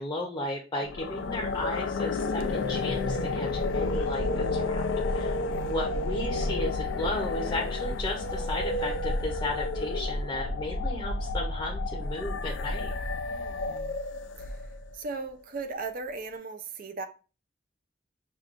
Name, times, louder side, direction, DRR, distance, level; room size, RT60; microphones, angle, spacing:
voice 1, 0.0-4.9 5.1-5.4 5.6-12.9, left 1 dB, 20° left, 0.6 m, -34 dB
sound 1, 0.8-14.9, left 2 dB, 90° left, 0.4 m, -30 dB
voice 2, 5.3-5.7 13.3-14.0 14.4-14.6 14.9-17.0, right 3 dB, 50° right, 0.5 m, -38 dB
5.9 x 2.3 x 2.5 m
head